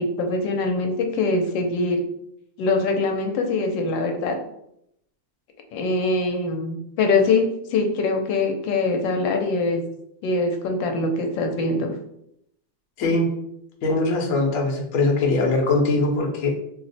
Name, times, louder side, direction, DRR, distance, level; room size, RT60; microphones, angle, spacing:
voice 1, 0.0-2.0 2.6-4.4 5.7-9.8 10.2-11.9, left 3 dB, 90° left, 4 dB, 1.3 m, -23 dB
voice 2, 13.8-16.5, left 2 dB, 60° left, 0 dB, 0.9 m, -21 dB
3.0 x 2.0 x 4.0 m, 0.77 s
omnidirectional pair, 1.9 m